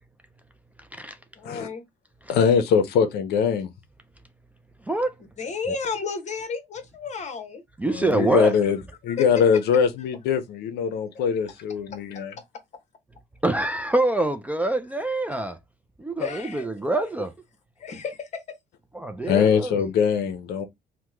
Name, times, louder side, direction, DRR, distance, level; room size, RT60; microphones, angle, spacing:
voice 1, 1.4-1.9 5.4-7.6 9.2-9.5 11.9-12.0 16.2-16.7 17.8-18.4 19.2-19.4, left 5 dB, 45° left, 0.9 m, -32 dB
voice 2, 2.3-3.7 7.9-8.8 9.1-12.3 19.3-20.7, left 7 dB, 75° left, 0.6 m, -22 dB
voice 3, 7.8-8.5 13.4-15.6 16.0-17.3 18.9-19.9, right 2 dB, 10° right, 0.3 m, -25 dB
2.9 x 2.1 x 3.4 m
cardioid pair, 110°, 17 cm